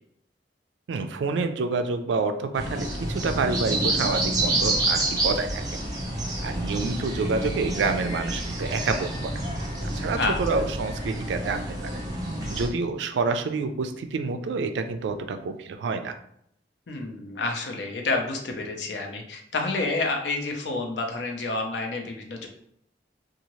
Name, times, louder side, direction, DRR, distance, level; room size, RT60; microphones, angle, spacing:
voice 1, 0.9-5.6 6.4-9.3 9.8-12.0 12.5-16.2, right 4 dB, 80° right, 8 dB, 0.3 m, -28 dB
sound 1, 2.5-12.7, right 1 dB, 20° right, 0.7 m, -28 dB
voice 2, 10.2-10.6 16.9-22.5, left 3 dB, 80° left, 2 dB, 0.6 m, -29 dB
2.7 x 2.4 x 3.0 m, 0.71 s
head